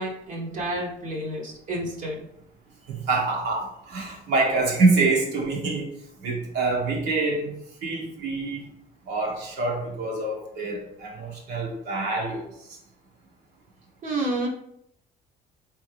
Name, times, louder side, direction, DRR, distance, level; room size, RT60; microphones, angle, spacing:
voice 1, 0.0-2.2 14.0-14.5, right 1 dB, 50° right, -1 dB, 1.0 m, -30 dB
voice 2, 2.9-5.9 6.2-7.5 7.8-8.7 9.1-12.4 12.7-12.8, right 3 dB, 80° right, -2 dB, 1.5 m, -26 dB
3.8 x 3.5 x 3.3 m, 0.74 s
cardioid pair, 110°, 17 cm